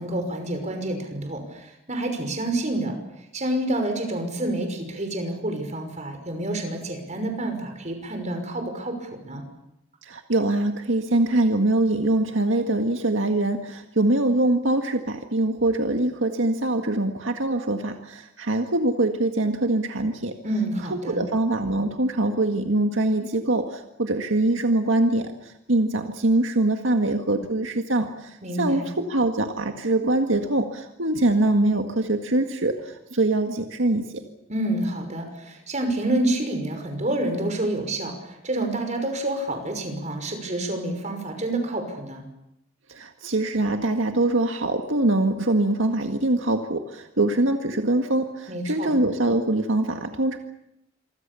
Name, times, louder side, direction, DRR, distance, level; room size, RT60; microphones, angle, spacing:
voice 1, 0.0-2.9 3.3-9.4 20.4-21.2 28.4-28.8 34.5-38.1 38.4-42.2 48.5-48.9, right 1 dB, 35° right, 5 dB, 5.9 m, -28 dB
voice 2, 10.1-20.3 20.9-25.3 25.7-28.1 28.6-32.8 33.1-34.1 42.9-50.4, right 2 dB, 80° right, 5 dB, 1.9 m, -23 dB
27.5 x 24.5 x 7.1 m, 0.85 s
head